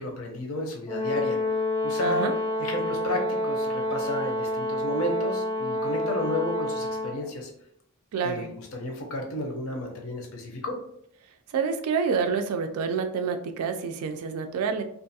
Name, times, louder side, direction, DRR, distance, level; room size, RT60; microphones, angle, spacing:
voice 1, 0.0-1.4 1.8-2.3 2.6-7.5 8.2-10.7, left 1 dB, 70° left, 2 dB, 0.6 m, -32 dB
Brass instrument, 0.9-7.3, left 1 dB, 20° left, 0.4 m, -28 dB
voice 2, 2.0-2.3 8.1-8.5 11.5-14.8, right 5 dB, 85° right, 7 dB, 0.3 m, -28 dB
2.5 x 2.3 x 2.7 m, 0.71 s
head